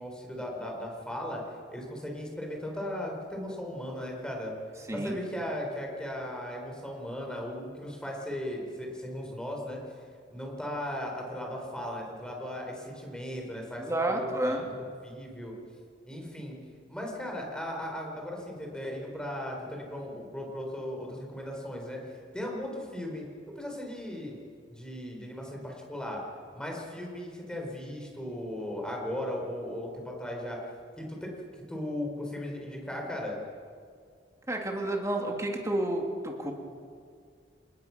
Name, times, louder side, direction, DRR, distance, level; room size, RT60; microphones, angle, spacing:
voice 1, 0.0-1.4 1.7-4.6 4.9-9.8 10.3-14.7 15.0-15.5 16.1-16.5 16.9-23.2 23.6-24.4 24.7-26.2 26.5-30.6 31.0-31.3 31.7-33.4, left 1 dB, 5° left, 0 dB, 4.6 m, -37 dB
voice 2, 13.8-14.7 34.5-36.5, right 1 dB, 15° right, 2 dB, 2.7 m, -30 dB
27.5 x 20.0 x 6.1 m, 2.1 s
head